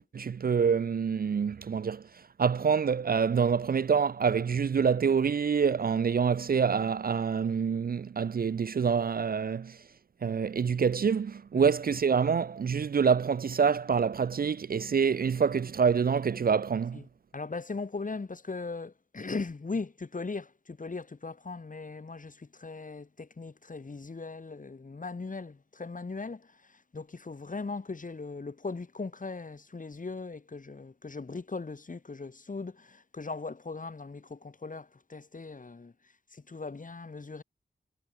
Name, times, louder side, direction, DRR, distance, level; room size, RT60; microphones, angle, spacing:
voice 1, 0.0-2.0 2.4-9.8 10.2-17.0, right 6 dB, 50° right, 0.5 m, -26 dB
voice 2, 17.3-37.4, left 3 dB, 40° left, 3.5 m, -39 dB
wide cardioid pair, 95°, 20 cm